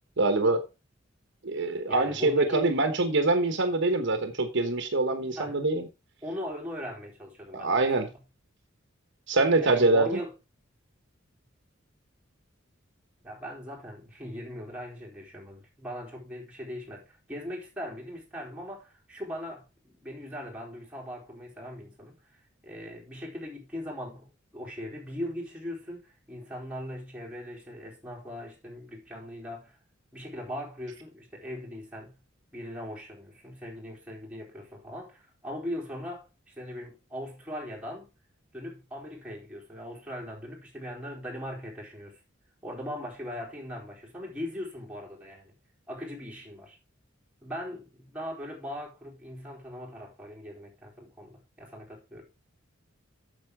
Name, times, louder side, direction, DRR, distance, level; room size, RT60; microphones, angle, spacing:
voice 1, 0.2-0.6 1.4-5.9 7.5-8.1 9.3-10.2, right 2 dB, 65° right, 1.2 m, -24 dB
voice 2, 1.9-2.7 5.4-5.6 6.2-8.1 9.6-10.3 13.2-22.2 22.6-29.8 30.1-32.2 32.5-36.3 36.6-38.1 38.5-42.2 42.6-45.5 45.9-46.8 47.4-52.3, equal, 5° right, 4.0 m, -39 dB
8.3 x 6.8 x 4.7 m
head